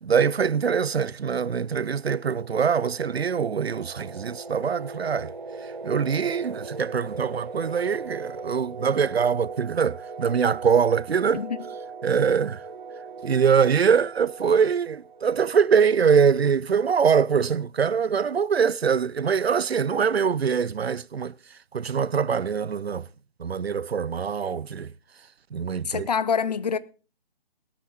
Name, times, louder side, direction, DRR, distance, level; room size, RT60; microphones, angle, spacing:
voice 1, 0.0-5.3 5.6-11.4 12.0-12.6 13.2-21.3 21.7-23.1 23.4-24.9 25.5-26.1, right 6 dB, 85° right, 0.5 m, -23 dB
sound 1, 1.6-16.1, right 4 dB, 50° right, 1.9 m, -39 dB
voice 2, 25.8-26.8, left 6 dB, 40° left, 0.7 m, -26 dB
18.0 x 8.9 x 4.2 m
figure-of-eight pair, 145°, 30 cm